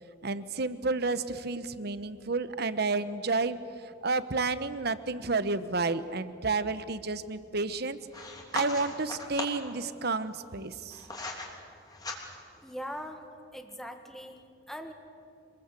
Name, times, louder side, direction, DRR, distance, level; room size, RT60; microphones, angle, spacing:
voice 1, 0.2-3.6 3.8-8.0 8.5-11.1, right 3 dB, 60° right, 13 dB, 1.0 m, -31 dB
sound 1, 8.1-9.7 10.5-11.5 11.9-12.6, left 2 dB, 20° left, 3.2 m, -38 dB
voice 2, 12.6-13.2 13.5-14.4 14.7-14.9, equal, ahead, 5 dB, 1.7 m, -40 dB
26.0 x 21.0 x 8.3 m, 2.5 s
head